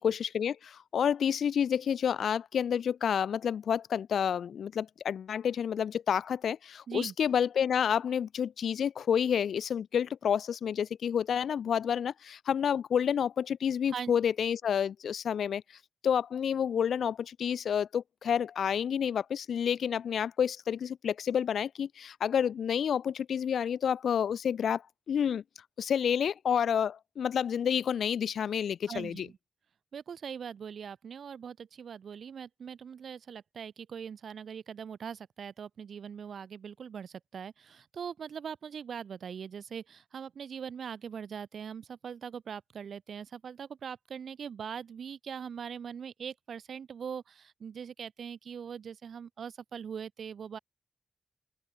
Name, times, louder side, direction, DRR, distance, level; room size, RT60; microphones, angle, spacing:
voice 1, 0.0-15.6 16.0-24.8 25.1-25.4 25.8-29.3, left 8 dB, 85° left, 3.0 m, -29 dB
voice 2, 28.9-29.4 29.9-50.6, right 7 dB, 80° right, 2.9 m, -41 dB
open air
cardioid pair, 50°, 0 cm